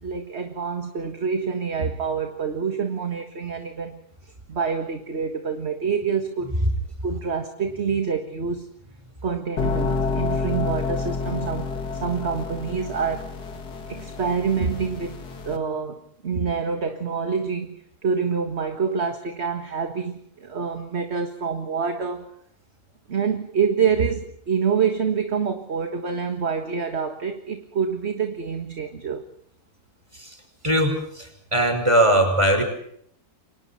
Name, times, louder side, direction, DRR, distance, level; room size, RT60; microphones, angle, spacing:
voice 1, 0.0-6.5 7.0-8.8 9.2-13.4 13.9-22.3 23.1-29.2, right 6 dB, 40° right, 1.8 m, -27 dB
sound 1, 9.6-15.6, left 4 dB, 70° left, 2.7 m, -29 dB
voice 2, 30.6-31.3 31.5-32.6, right 1 dB, 15° right, 5.4 m, -19 dB
29.0 x 25.0 x 4.3 m
omnidirectional pair, 1.8 m